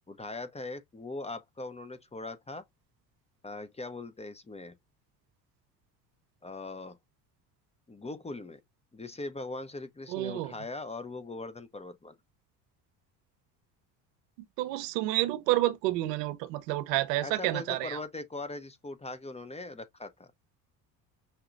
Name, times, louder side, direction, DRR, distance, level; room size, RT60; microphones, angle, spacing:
voice 1, 0.1-2.6 3.4-4.7 6.4-7.0 7.9-8.6 8.9-12.1 17.2-20.3, left 2 dB, 15° left, 0.7 m, -40 dB
voice 2, 10.1-10.5 14.6-18.0, right 17 dB, 70° right, 0.8 m, -29 dB
5.9 x 2.9 x 2.5 m
hypercardioid pair, 65°, 50 cm